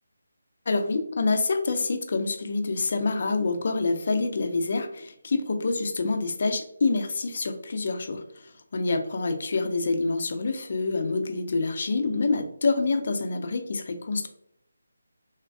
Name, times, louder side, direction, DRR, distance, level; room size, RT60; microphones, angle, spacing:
voice 1, 0.7-14.3, left 3 dB, 50° left, 7 dB, 0.3 m, -27 dB
3.3 x 2.2 x 2.2 m, 0.74 s
figure-of-eight pair, 160°, 0 cm